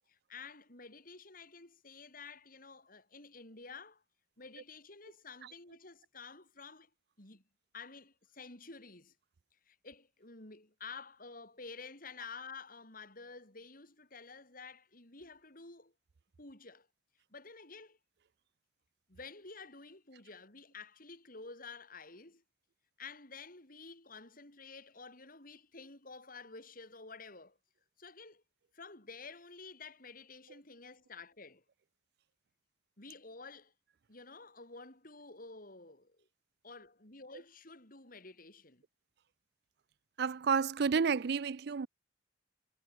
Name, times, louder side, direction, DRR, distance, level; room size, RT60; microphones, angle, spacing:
voice 1, 0.1-4.0 4.4-6.9 7.2-7.4 7.7-9.1 9.7-15.9 16.4-16.9 17.3-18.0 19.1-22.4 23.0-27.6 28.0-28.4 28.7-31.6 33.0-33.7 34.1-36.3 36.6-38.8, left 4 dB, 50° left, 6.3 m, -51 dB
voice 2, 40.2-41.9, right 5 dB, 65° right, 0.5 m, -30 dB
head